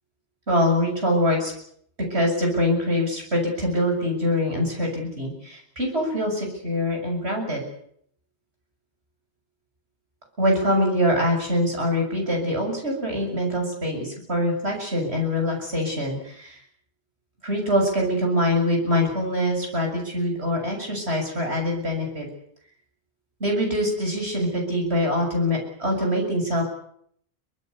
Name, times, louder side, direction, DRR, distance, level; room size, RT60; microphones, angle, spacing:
voice 1, 0.5-1.5 2.0-7.6 10.4-16.6 17.4-22.3 23.4-26.6, left 1 dB, 80° right, 1 dB, 7.6 m, -24 dB
24.0 x 20.5 x 8.4 m, 0.69 s
omnidirectional pair, 1.1 m